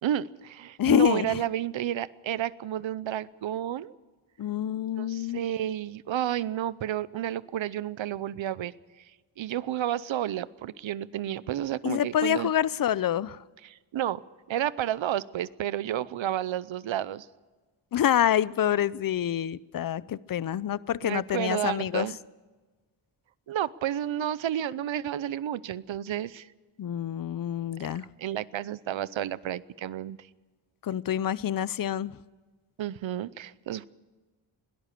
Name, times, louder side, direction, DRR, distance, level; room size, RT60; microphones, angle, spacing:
voice 1, 0.0-3.9 5.0-8.7 9.4-12.5 13.6-14.2 14.5-17.3 21.0-22.2 23.5-26.5 28.2-30.3 32.8-33.9, right 11 dB, 70° right, 18 dB, 0.7 m, -31 dB
voice 2, 0.8-1.4 4.4-5.4 11.8-13.4 17.9-22.1 26.8-28.0 30.8-32.1, left 10 dB, 45° left, 20 dB, 0.5 m, -27 dB
21.5 x 18.0 x 6.8 m, 1.3 s
wide cardioid pair, 145°, 48 cm